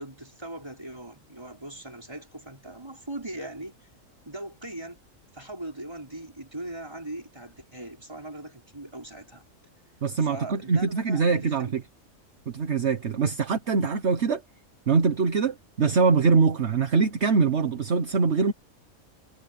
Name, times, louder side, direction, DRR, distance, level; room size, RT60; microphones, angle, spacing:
voice 1, 0.0-3.9 4.3-5.0 5.3-9.4 10.2-11.7, right 1 dB, 20° right, 5.3 m, -40 dB
voice 2, 10.0-11.8 12.5-14.4 14.9-18.5, right 5 dB, 55° right, 1.4 m, -23 dB
omnidirectional pair, 1.4 m